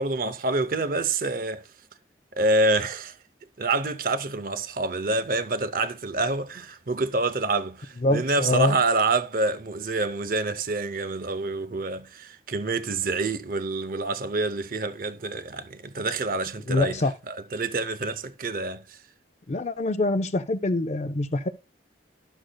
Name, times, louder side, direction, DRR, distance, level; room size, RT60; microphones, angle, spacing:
voice 1, 0.0-1.7 2.3-3.2 3.6-17.0 17.3-19.0, right 2 dB, 50° right, 0.6 m, -27 dB
voice 2, 8.0-8.8 16.7-17.1 19.5-21.5, left 2 dB, 40° left, 0.5 m, -25 dB
13.0 x 6.3 x 2.2 m
head